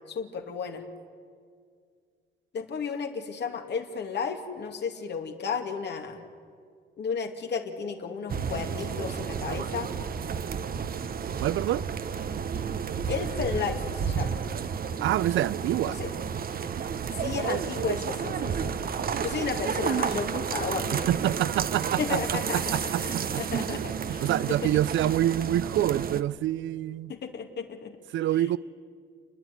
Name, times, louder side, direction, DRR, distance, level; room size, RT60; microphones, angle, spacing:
voice 1, 0.1-0.8 2.5-6.2 7.0-9.9 13.1-14.4 15.9-16.1 17.1-18.7 19.2-20.9 22.0-24.7 27.1-28.0 28.4-28.5, left 6 dB, 60° left, 2.4 m, -33 dB
sound 1, 8.3-26.2, right 7 dB, 50° right, 1.0 m, -31 dB
voice 2, 11.4-11.8 15.0-16.0 20.9-23.8 24.1-27.1 28.1-28.6, right 13 dB, 75° right, 0.5 m, -27 dB
29.5 x 10.5 x 9.6 m
cardioid pair, 90°, 20 cm